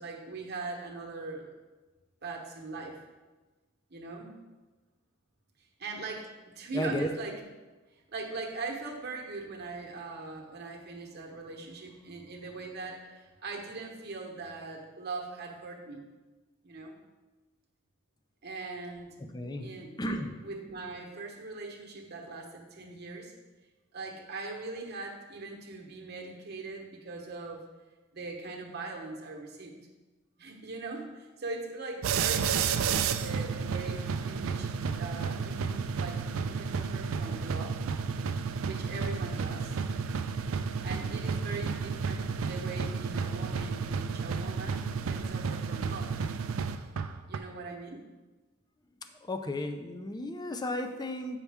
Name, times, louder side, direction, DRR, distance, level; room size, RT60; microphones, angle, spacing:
voice 1, 0.0-1.5 2.2-3.0 3.9-4.4 5.8-7.3 8.1-16.0 16.6-16.9 18.4-19.2 19.6-23.3 23.9-27.6 28.1-29.7 30.4-37.8 38.6-39.8 40.8-46.1 47.3-48.0, right 3 dB, 55° right, 1 dB, 1.1 m, -41 dB
voice 2, 6.7-7.1 19.3-19.7 20.0-20.3 49.2-51.4, left 1 dB, 20° left, 7 dB, 0.5 m, -34 dB
sound 1, 32.0-47.4, right 6 dB, 80° right, 0.4 m, -32 dB
8.2 x 5.6 x 3.5 m, 1.2 s
head